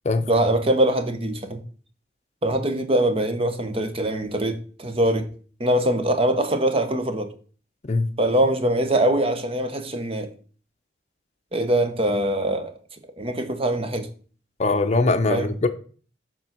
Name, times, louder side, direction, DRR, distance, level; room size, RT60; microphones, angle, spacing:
voice 1, 0.3-1.6 2.4-5.3 5.6-7.3 8.2-10.3 11.5-12.7 13.2-14.1 15.3-15.5, right 1 dB, 30° right, 0.9 m, -23 dB
voice 2, 14.6-15.7, left 3 dB, 40° left, 0.6 m, -21 dB
7.2 x 3.8 x 5.9 m
head